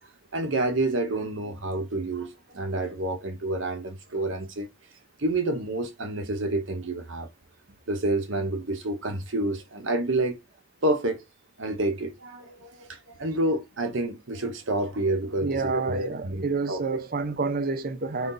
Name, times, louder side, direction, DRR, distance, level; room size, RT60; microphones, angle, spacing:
voice 1, 0.3-4.7 5.2-7.3 7.9-10.4 10.8-11.2 11.6-17.0 18.2-18.3, right 2 dB, 70° right, 0.9 m, -29 dB
voice 2, 15.4-18.3, right 4 dB, 50° right, 0.7 m, -29 dB
3.9 x 3.3 x 3.8 m
head